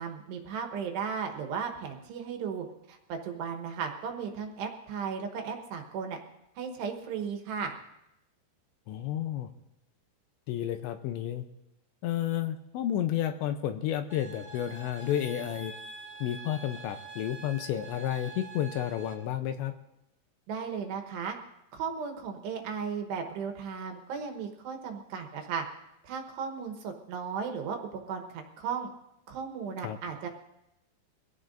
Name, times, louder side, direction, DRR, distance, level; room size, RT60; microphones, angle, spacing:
voice 1, 0.0-6.2 6.6-7.7 20.5-21.4 21.7-25.6 26.0-28.9 29.3-30.3, right 6 dB, 70° right, 4 dB, 3.0 m, -35 dB
voice 2, 8.9-9.5 10.5-11.4 12.0-15.7 16.2-19.7 29.8-30.0, left 11 dB, 80° left, 8 dB, 2.8 m, -31 dB
sound 1, 14.1-19.1, right 4 dB, 60° left, 0.7 m, -45 dB
23.5 x 16.5 x 2.6 m, 0.85 s
omnidirectional pair, 5.5 m